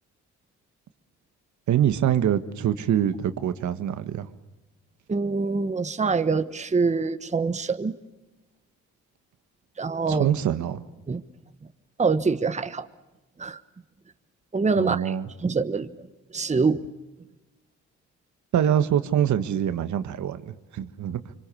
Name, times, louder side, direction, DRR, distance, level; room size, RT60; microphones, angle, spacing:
voice 1, 1.7-4.3 10.1-10.8 14.8-15.3 18.5-21.2, right 10 dB, 70° right, 10 dB, 1.5 m, -24 dB
voice 2, 5.1-7.9 9.8-10.3 11.1-11.2 12.0-12.9 13.4-13.6 14.5-15.1 15.4-15.9 16.3-16.8, right 4 dB, 25° right, 10 dB, 1.2 m, -24 dB
26.0 x 25.0 x 7.0 m, 1.1 s
cardioid pair, 90°, 30 cm